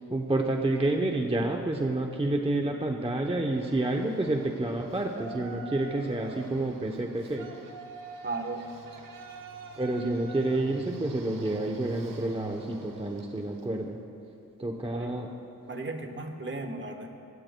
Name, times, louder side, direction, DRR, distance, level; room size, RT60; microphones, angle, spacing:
voice 1, 0.1-7.5 9.8-14.0 14.6-15.3, right 2 dB, 15° right, 2 dB, 0.8 m, -29 dB
Yell, 3.5-13.7, right 4 dB, 75° right, 1.1 m, -45 dB
voice 2, 8.2-8.6 14.9-15.1 15.7-17.1, right 3 dB, 35° right, 4 dB, 1.3 m, -35 dB
22.5 x 16.0 x 2.3 m, 2.6 s
wide cardioid pair, 80°, 33 cm